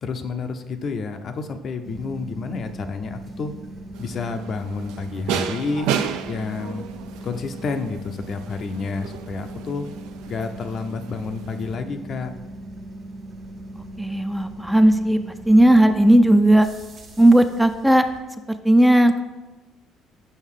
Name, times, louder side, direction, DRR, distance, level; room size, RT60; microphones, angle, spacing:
voice 1, 0.0-3.5 4.0-5.9 6.3-6.8 7.2-9.9 10.3-12.3, left 4 dB, 50° left, 7 dB, 0.6 m, -30 dB
sound 1, 1.8-18.2, right 1 dB, 50° right, 1.3 m, -39 dB
sound 2, 3.9-11.7, right 8 dB, 85° right, 0.4 m, -33 dB
voice 2, 14.0-15.2 15.5-16.7 17.2-18.0 18.6-19.2, right 1 dB, 5° right, 8 dB, 0.4 m, -15 dB
6.4 x 5.3 x 3.7 m, 1.1 s
supercardioid pair, 80°, 0 cm